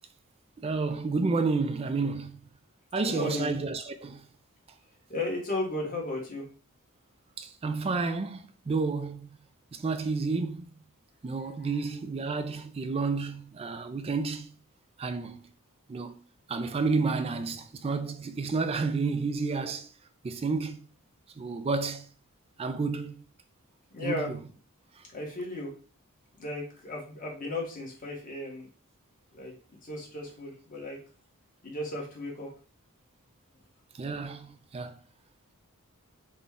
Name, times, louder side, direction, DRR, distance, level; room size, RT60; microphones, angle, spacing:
voice 1, 0.6-2.4 2.9-4.2 7.4-8.4 8.7-9.3 9.7-10.6 11.2-14.5 15.0-15.5 15.9-16.2 16.5-19.9 20.2-20.8 21.4-22.0 22.6-23.2 24.0-24.4 34.0-34.9, right 4 dB, 25° right, 0.3 m, -30 dB
voice 2, 3.0-3.5 5.1-6.4 11.4-11.7 23.9-24.3 25.1-25.7 26.4-28.7 29.4-29.5 29.8-31.0 31.6-32.5, left 2 dB, 40° left, 1.3 m, -35 dB
3.9 x 2.2 x 3.6 m
head